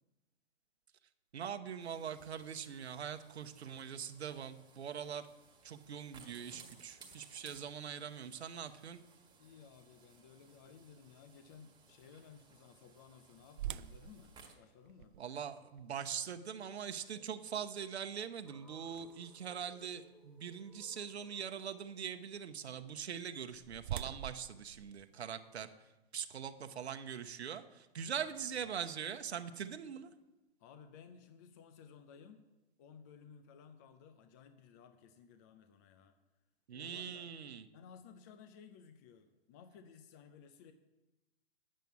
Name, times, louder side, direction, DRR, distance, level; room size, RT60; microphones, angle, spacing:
voice 1, 1.3-5.3 5.6-9.0 15.2-30.1 36.7-37.6, right 8 dB, 75° right, 8 dB, 1.0 m, -42 dB
sound 1, 1.8-14.5, right 4 dB, 15° right, 1.4 m, -62 dB
voice 2, 9.4-15.2 28.0-28.4 30.6-32.5 32.8-36.2 36.7-37.3 37.7-40.7, left 6 dB, 20° left, 8 dB, 0.3 m, -57 dB
sound 2, 13.6-19.5 20.1-20.2 20.8-21.0 23.1-25.7, right 12 dB, 50° right, 0.5 m, -47 dB
sound 3, 18.4-22.7, left 1 dB, ahead, 1.6 m, -65 dB
9.2 x 7.5 x 8.2 m, 1.1 s
hypercardioid pair, 130°, 32 cm